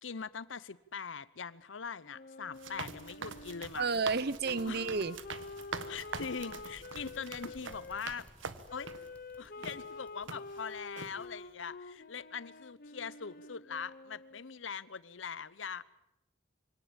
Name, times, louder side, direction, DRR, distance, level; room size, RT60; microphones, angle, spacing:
voice 1, 0.0-4.0 4.7-5.0 5.9-8.3 8.7-8.9 9.4-15.8, left 6 dB, 85° left, 18 dB, 0.9 m, -42 dB
Wind instrument woodwind instrument, 2.1-8.0 8.7-14.5, left 3 dB, 50° left, 0.9 m, -48 dB
sound 1, 2.5-9.1 9.6-9.8 10.3-10.7 11.0-11.1, right 5 dB, 90° right, 1.4 m, -44 dB
sound 2, 2.7-11.9, equal, 5° left, 1.3 m, -61 dB
voice 2, 3.7-5.2, right 4 dB, 55° right, 18 dB, 0.8 m, -31 dB
24.5 x 17.5 x 8.9 m, 0.85 s
head